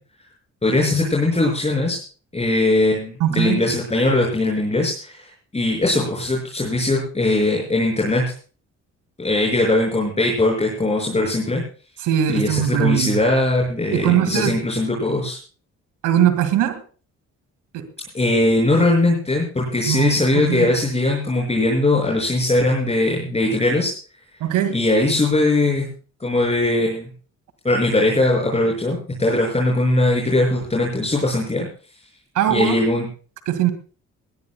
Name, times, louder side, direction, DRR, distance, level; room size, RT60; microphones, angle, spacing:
voice 1, 0.6-2.0 2.3-8.2 9.2-11.6 12.3-15.4 18.1-23.9 24.7-25.9 26.2-27.1 27.6-31.7 32.5-33.1, left 2 dB, 20° left, -2 dB, 6.2 m, -20 dB
voice 2, 3.2-3.6 12.0-13.2 13.9-14.6 16.0-16.8 17.7-17.9 19.9-20.7 24.4-24.8 32.4-32.8 33.5-33.7, right 11 dB, 90° right, 11 dB, 2.2 m, -20 dB
20.0 x 19.0 x 2.3 m, 0.38 s
cardioid pair, 90°, 30 cm